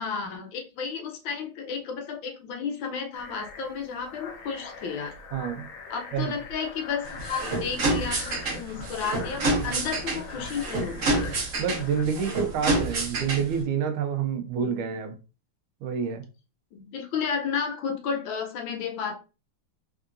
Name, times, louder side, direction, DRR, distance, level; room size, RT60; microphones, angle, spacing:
voice 1, 0.0-5.1 5.9-11.3 14.7-14.8 16.7-19.1, left 6 dB, 70° left, 1.4 m, -32 dB
sound 1, 3.1-12.0, left 5 dB, 55° left, 1.0 m, -43 dB
voice 2, 5.3-5.7 6.1-6.3 9.6-9.8 11.6-15.2 15.8-16.2, right 7 dB, 80° right, 1.4 m, -28 dB
sound 2, 7.0-13.6, right 2 dB, 45° right, 1.2 m, -28 dB
3.8 x 3.6 x 2.4 m
omnidirectional pair, 2.3 m